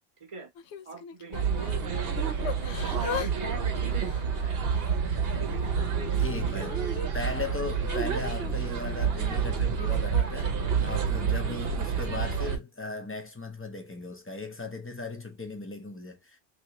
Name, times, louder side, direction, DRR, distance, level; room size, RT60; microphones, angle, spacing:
Yell / Crying sobbing, 0.6-1.8 2.4-3.3 3.6-5.0 5.5-7.1 7.8-8.0, left 7 dB, 75° left, 0.9 m, -39 dB
voice 1, 0.8-5.1 5.4-5.9 6.5-6.8 7.4-7.6, right 4 dB, 30° right, 1.0 m, -44 dB
sound 1, 1.3-12.6, right 6 dB, 60° right, 1.0 m, -28 dB
voice 2, 6.2-6.8 7.1-16.4, left 3 dB, 15° left, 0.6 m, -37 dB
3.3 x 2.9 x 2.9 m
omnidirectional pair, 1.2 m